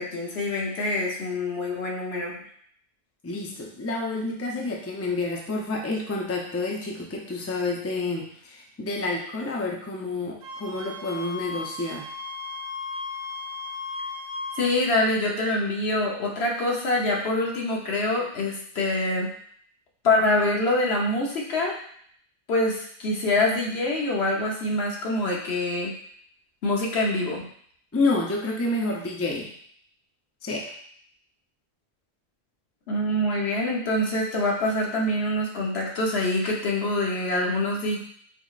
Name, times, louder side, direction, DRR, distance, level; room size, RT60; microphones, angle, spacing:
voice 1, 0.0-2.3 14.6-19.3 20.0-21.7 22.5-25.9 26.6-27.4 32.9-38.0, left 2 dB, 85° left, -2 dB, 1.1 m, -25 dB
voice 2, 3.2-12.1 27.9-29.5 30.4-30.6, left 2 dB, 20° left, -1 dB, 0.4 m, -29 dB
Wind instrument woodwind instrument, 10.4-14.7, left 3 dB, 55° right, 0.7 m, -35 dB
4.8 x 3.0 x 2.4 m, 0.62 s
omnidirectional pair, 1.1 m